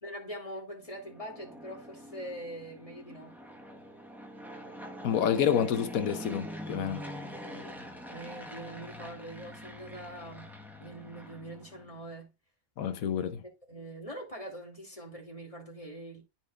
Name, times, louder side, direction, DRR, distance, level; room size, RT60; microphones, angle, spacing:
voice 1, 0.0-3.4 8.1-12.3 13.7-16.2, right 1 dB, 25° left, 2.6 m, -43 dB
Fixed-wing aircraft airplane, 0.9-12.0, equal, ahead, 1.0 m, -44 dB
voice 2, 5.0-7.0 12.8-13.4, left 8 dB, 75° left, 1.2 m, -28 dB
13.0 x 4.4 x 2.4 m
omnidirectional pair, 1.5 m